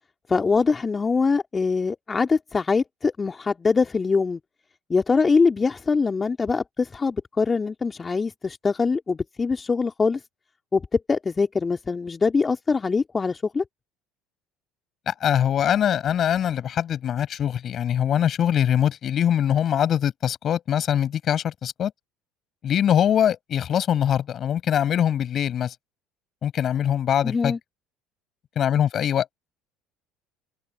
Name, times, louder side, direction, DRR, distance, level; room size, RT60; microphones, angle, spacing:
voice 1, 0.3-4.4 4.9-10.2 10.7-13.6 27.2-27.6, left 4 dB, 25° left, 2.5 m, -23 dB
voice 2, 15.1-21.9 22.6-25.7 26.4-27.5 28.6-29.3, left 9 dB, 45° left, 7.7 m, -23 dB
hypercardioid pair, 65°, 0 cm